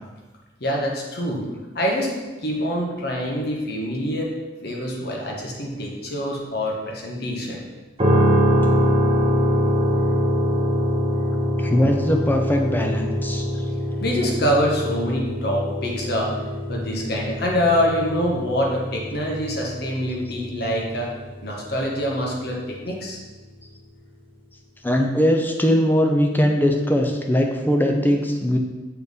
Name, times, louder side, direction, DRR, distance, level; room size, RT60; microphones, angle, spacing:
voice 1, 0.6-1.4 1.7-2.1 2.4-4.3 4.6-7.6 14.0-16.4 16.7-21.1 21.4-23.2, equal, 60° left, -1 dB, 1.2 m, -25 dB
sound 1, 8.0-22.0, equal, 30° right, 0.8 m, -23 dB
voice 2, 11.6-13.5 24.8-28.6, equal, 10° left, 2 dB, 0.6 m, -20 dB
7.0 x 4.1 x 3.5 m, 1.2 s
head